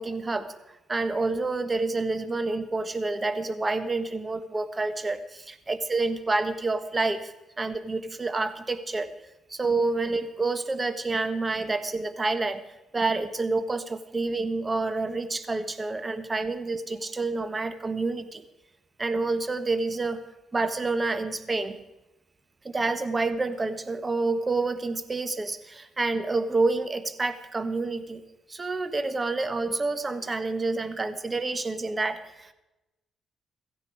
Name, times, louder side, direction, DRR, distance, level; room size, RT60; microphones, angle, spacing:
voice 1, 0.0-5.2 5.5-7.3 7.6-9.1 9.5-12.6 12.9-18.4 19.0-20.2 20.5-21.8 22.6-28.2 28.5-32.5, right 3 dB, 25° right, 12 dB, 1.3 m, -28 dB
16.5 x 14.5 x 4.8 m, 0.96 s
cardioid pair, 90°, 0 cm